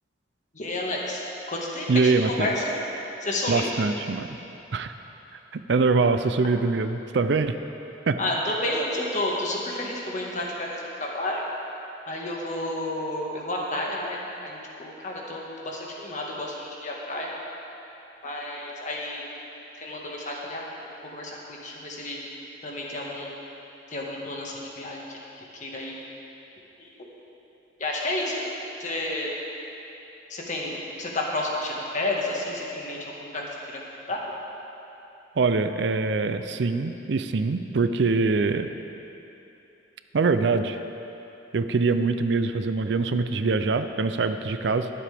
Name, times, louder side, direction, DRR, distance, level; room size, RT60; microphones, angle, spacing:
voice 1, 0.5-2.8 3.2-3.7 8.2-11.4 12.1-17.3 18.2-19.3 19.8-20.7 21.0-22.2 22.6-23.3 23.9-25.0 25.4-26.0 26.8-26.9 27.8-28.4 28.8-29.3 30.3-33.4 34.1-34.2, left 1 dB, 40° left, -2 dB, 1.7 m, -31 dB
voice 2, 1.9-2.5 3.5-4.3 4.7-4.9 5.5-7.6 8.1-8.2 35.4-38.7 40.1-40.8 41.5-44.9, right 4 dB, 65° right, 9 dB, 0.5 m, -23 dB
20.5 x 7.7 x 3.5 m, 2.9 s
head